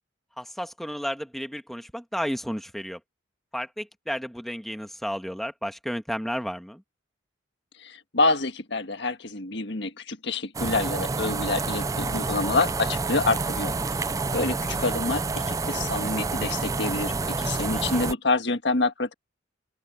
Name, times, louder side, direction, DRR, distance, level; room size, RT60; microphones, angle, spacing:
voice 1, 0.4-3.0 3.5-6.8 14.1-14.6 17.7-18.1, equal, ahead, 1.3 m, -33 dB
voice 2, 7.8-19.1, left 3 dB, 65° left, 1.6 m, -27 dB
sound 1, 10.5-18.1, right 3 dB, 20° right, 0.4 m, -28 dB
open air
head